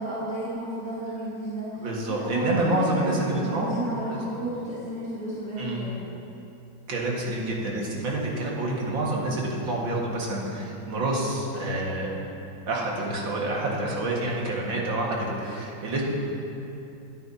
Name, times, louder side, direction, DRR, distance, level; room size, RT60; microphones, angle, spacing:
voice 1, 0.0-1.7 2.1-6.0, right 1 dB, 40° right, -12 dB, 2.7 m, -32 dB
voice 2, 1.8-3.7 4.1-4.2 5.6-5.8 6.9-12.2 12.7-16.0, right 2 dB, 65° right, -3 dB, 2.6 m, -28 dB
22.5 x 9.0 x 2.9 m, 2.8 s
omnidirectional pair, 2.2 m